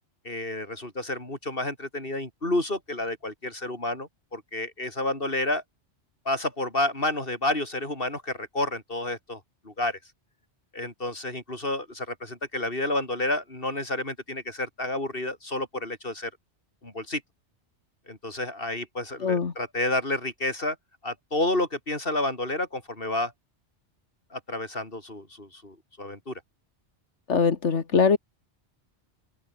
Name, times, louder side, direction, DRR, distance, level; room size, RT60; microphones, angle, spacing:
voice 1, 0.2-5.6 6.3-10.0 10.7-16.3 16.8-17.2 18.1-20.8 21.0-23.3 24.3-26.4, left 2 dB, 50° left, 5.6 m, -30 dB
voice 2, 19.2-19.5 27.3-28.2, left 5 dB, 85° left, 2.0 m, -22 dB
open air
omnidirectional pair, 1.2 m